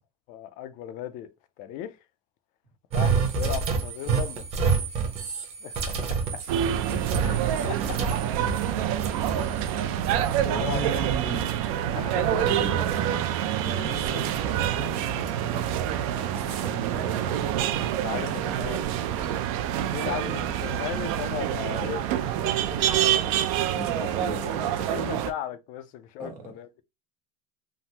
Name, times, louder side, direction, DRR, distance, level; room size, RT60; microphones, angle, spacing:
voice 1, 0.3-1.3 1.6-2.0 2.9-4.4 5.6-6.6 7.1-8.0 10.6-11.1 11.9-12.5 13.8-14.4 16.2-16.3 17.0-17.3 18.0-18.8 19.9-23.3 24.0-24.5 24.9-26.8, left 11 dB, 45° left, 0.4 m, -37 dB
sound 1, 2.9-8.7 9.0-10.4, right 5 dB, 30° right, 0.8 m, -28 dB
sound 2, 6.5-25.3, right 10 dB, 60° right, 0.4 m, -27 dB
voice 2, 10.5-11.5 12.3-15.7 16.3-17.6 18.3-18.9 19.8-20.5 23.0-23.3 23.7-25.1 26.2-26.5, right 4 dB, 85° right, 1.3 m, -36 dB
3.5 x 2.0 x 2.7 m
supercardioid pair, 145°, 20 cm